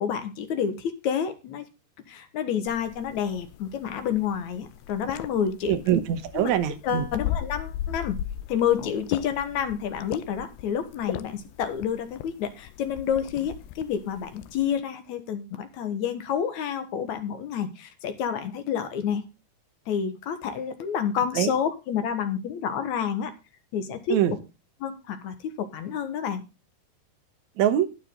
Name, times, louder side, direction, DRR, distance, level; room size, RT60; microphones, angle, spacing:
voice 1, 0.0-1.6 2.1-5.8 6.3-6.5 6.8-8.2 8.5-19.2 19.9-23.3 23.7-24.2 24.8-26.4, left 8 dB, 60° left, 9 dB, 2.3 m, -29 dB
sound 1, 2.7-14.8, left 12 dB, 80° left, 2.4 m, -38 dB
voice 2, 5.7-7.1 21.3-21.5 24.1-24.4 27.6-27.9, right 10 dB, 70° right, 10 dB, 1.9 m, -23 dB
12.0 x 9.3 x 3.8 m, 0.28 s
omnidirectional pair, 4.5 m